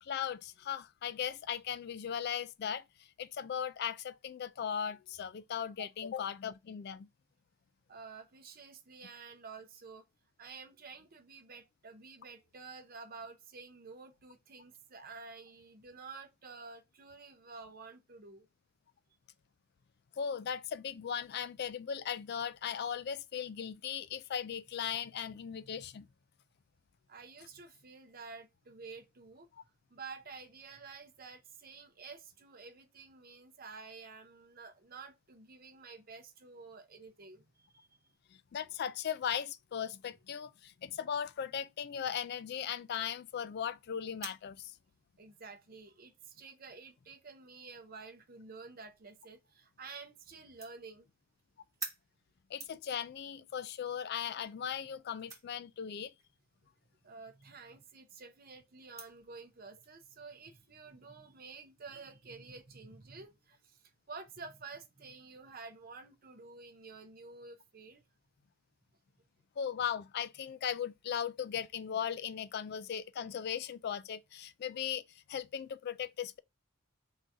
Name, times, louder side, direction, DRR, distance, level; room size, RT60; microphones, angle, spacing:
voice 1, 0.0-2.8 3.2-7.1 20.2-26.1 38.5-44.7 52.5-56.1 69.6-76.4, left 8 dB, 45° left, 0.3 m, -38 dB
voice 2, 7.9-10.0 10.4-18.5 27.1-29.5 29.9-37.9 45.2-51.1 57.0-68.0, right 4 dB, 40° right, 0.6 m, -50 dB
sound 1, 42.2-59.9, right 4 dB, 15° right, 1.4 m, -54 dB
3.8 x 2.7 x 4.5 m
head